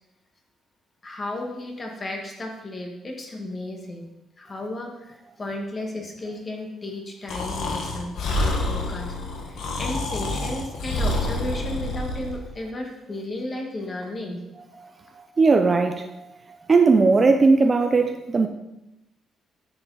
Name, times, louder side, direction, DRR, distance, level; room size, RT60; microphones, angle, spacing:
voice 1, 1.0-4.1 4.4-9.1 9.4-14.4, left 1 dB, 25° left, 2 dB, 1.6 m, -34 dB
Breathing, 7.3-12.4, left 2 dB, 75° left, 1.6 m, -27 dB
voice 2, 14.8-16.4 16.7-18.5, right 4 dB, 25° right, 7 dB, 0.5 m, -19 dB
10.0 x 7.0 x 4.1 m, 0.91 s
cardioid pair, 145°, 0 cm